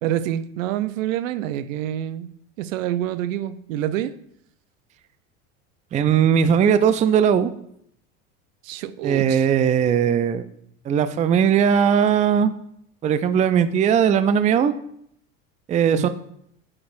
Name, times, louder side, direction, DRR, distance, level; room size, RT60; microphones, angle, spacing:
voice 1, 0.0-2.3 2.6-4.1 8.6-9.5 15.9-16.1, right 11 dB, 75° right, 14 dB, 0.6 m, -27 dB
voice 2, 5.9-7.5 9.0-10.4 10.9-12.5 13.0-14.7 15.7-16.1, right 8 dB, 20° right, 12 dB, 0.3 m, -18 dB
8.5 x 4.2 x 2.6 m, 0.70 s
hypercardioid pair, 85°, 39 cm